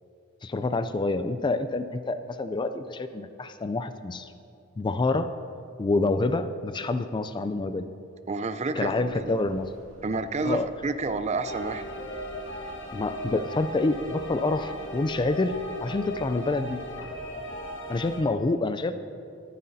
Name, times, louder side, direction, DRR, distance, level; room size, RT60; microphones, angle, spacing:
voice 1, 0.4-4.3 4.8-5.3 5.8-7.9 8.8-9.7 10.4-10.7 12.9-16.8 17.9-18.9, left 2 dB, 20° left, 11 dB, 0.3 m, -27 dB
voice 2, 8.3-9.3 10.0-11.8, right 3 dB, 35° right, 11 dB, 0.5 m, -30 dB
sound 1, 8.8-17.2, equal, 70° right, 2.1 m, -54 dB
sound 2, 11.4-18.2, equal, 60° left, 1.5 m, -37 dB
25.5 x 9.6 x 2.7 m, 2.6 s
head